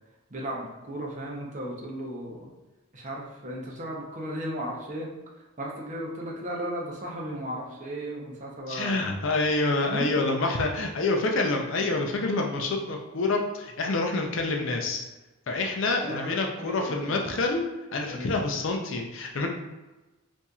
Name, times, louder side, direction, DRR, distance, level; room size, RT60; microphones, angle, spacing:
voice 1, 0.3-2.5 2.9-5.1 5.6-9.0 9.8-10.1 15.9-17.2 18.1-18.5, equal, 35° right, -2 dB, 0.7 m, -35 dB
voice 2, 8.7-15.0 15.5-17.6 17.9-19.5, left 2 dB, 60° left, 2 dB, 0.5 m, -27 dB
4.1 x 2.6 x 2.3 m, 1.1 s
head